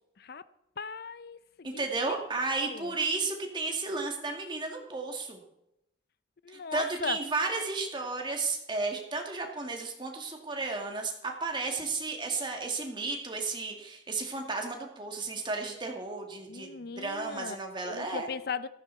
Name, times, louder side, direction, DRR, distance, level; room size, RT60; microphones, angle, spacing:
voice 1, 0.8-2.3 2.7-2.9 6.4-7.2 16.5-17.6 17.8-18.7, left 5 dB, 60° left, 0.6 m, -38 dB
voice 2, 1.6-5.4 6.5-18.3, right 3 dB, 25° right, 2.4 m, -33 dB
14.5 x 14.0 x 4.2 m
head